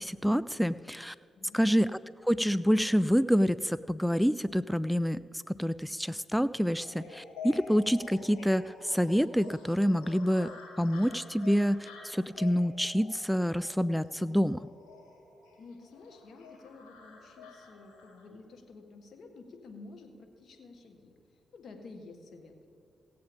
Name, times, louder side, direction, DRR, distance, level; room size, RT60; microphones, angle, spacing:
voice 1, 0.0-1.1 1.5-1.9 2.2-10.5 10.8-14.7, equal, 5° left, 16 dB, 0.3 m, -27 dB
sound 1, 6.8-18.3, left 4 dB, 85° left, 2.3 m, -49 dB
voice 2, 15.6-21.2 21.5-22.7, left 3 dB, 65° left, 5 dB, 1.6 m, -51 dB
17.0 x 7.9 x 5.2 m, 2.6 s
supercardioid pair, 45°, 0 cm